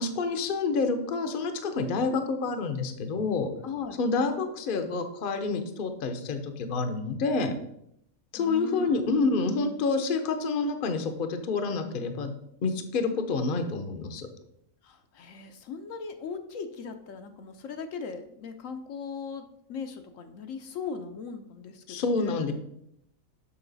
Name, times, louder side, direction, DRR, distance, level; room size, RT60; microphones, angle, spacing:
voice 1, 0.0-3.5 4.0-7.5 8.3-12.3 12.6-14.3 21.9-22.5, left 4 dB, 45° left, 7 dB, 0.8 m, -28 dB
voice 2, 3.6-4.0 8.4-10.0 14.8-22.5, left 5 dB, 70° left, 7 dB, 1.1 m, -38 dB
6.9 x 5.8 x 4.0 m, 0.75 s
omnidirectional pair, 1.4 m